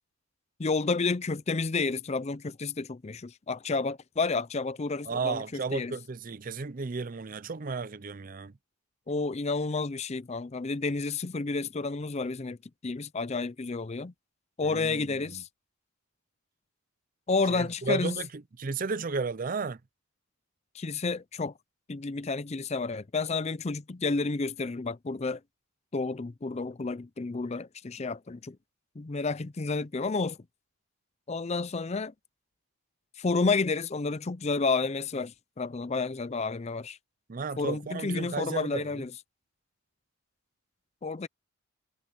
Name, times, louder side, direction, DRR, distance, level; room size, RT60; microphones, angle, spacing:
voice 1, 0.6-5.9 9.1-12.6 12.8-14.1 14.6-15.5 17.3-18.2 20.7-21.5 21.9-25.4 25.9-28.6 29.0-30.4 31.3-32.1 33.2-37.0 37.6-39.1 41.0-41.3, left 3 dB, 30° left, 0.5 m, -30 dB
voice 2, 5.1-8.5 14.6-15.4 17.5-18.3 18.6-19.8 37.3-39.0, right 4 dB, 40° right, 0.5 m, -33 dB
head